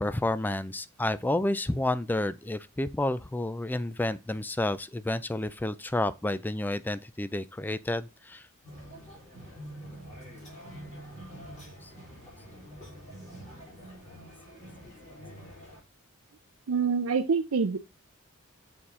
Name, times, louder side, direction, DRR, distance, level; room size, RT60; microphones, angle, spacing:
voice 1, 0.0-8.4 11.8-11.9, left 1 dB, 10° left, 0.3 m, -30 dB
sound 1, 8.6-15.8, right 1 dB, 30° left, 3.7 m, -46 dB
voice 2, 16.7-17.8, right 5 dB, 75° right, 0.5 m, -26 dB
6.6 x 4.2 x 3.7 m
head